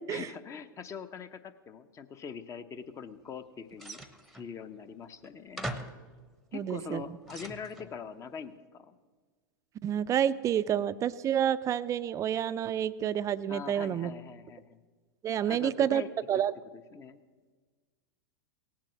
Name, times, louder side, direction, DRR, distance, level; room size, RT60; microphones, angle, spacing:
voice 1, 0.1-4.0 4.3-5.7 6.5-8.9 13.5-14.8 15.5-16.4 16.9-17.2, left 6 dB, 25° left, 11 dB, 0.8 m, -43 dB
sound 1, 3.8-4.5 5.2-5.3 5.6-6.1 6.8-7.9, right 1 dB, ahead, 0.9 m, -41 dB
voice 2, 6.5-7.0 9.8-14.1 15.2-16.0 16.3-16.5, right 10 dB, 25° right, 14 dB, 0.5 m, -29 dB
17.5 x 7.5 x 7.4 m, 1.4 s
hypercardioid pair, 105°, 12 cm